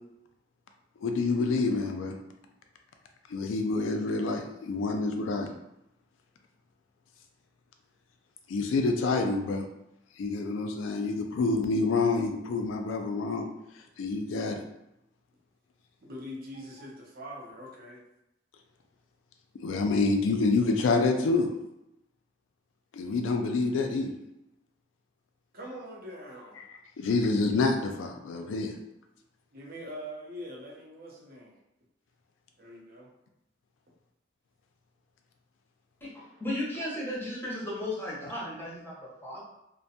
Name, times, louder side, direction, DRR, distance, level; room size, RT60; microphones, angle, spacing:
voice 1, 1.0-2.2 3.3-5.5 8.5-9.7 10.2-13.5 14.0-14.6 19.5-21.5 22.9-24.1 26.7-28.8, left 3 dB, 85° left, 4 dB, 0.3 m, -27 dB
voice 2, 16.0-18.0 25.5-26.6 29.5-31.6 32.6-33.1, equal, 50° right, -2 dB, 0.7 m, -43 dB
voice 3, 36.0-39.4, left 1 dB, 10° left, -6 dB, 0.7 m, -35 dB
2.5 x 2.2 x 2.7 m, 0.85 s
head